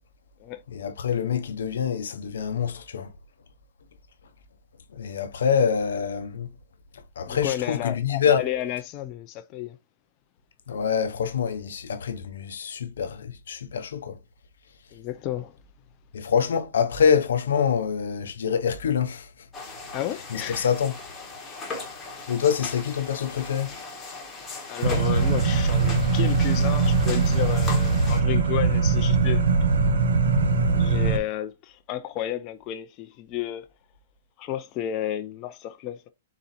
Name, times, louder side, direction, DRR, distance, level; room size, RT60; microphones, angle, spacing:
voice 1, 0.7-3.1 4.9-6.5 6.9-8.4 10.7-14.2 16.1-19.3 20.3-21.0 22.3-23.7, left 7 dB, 80° left, 0.6 m, -25 dB
voice 2, 7.3-9.8 14.9-15.6 19.9-20.7 24.7-29.4 30.7-33.6 34.4-36.1, left 12 dB, 35° left, 0.4 m, -32 dB
sound 1, 19.5-28.2, left 4 dB, 15° left, 1.3 m, -38 dB
sound 2, 24.8-31.2, right 4 dB, 85° right, 0.8 m, -21 dB
4.1 x 2.5 x 4.1 m
hypercardioid pair, 140°, 0 cm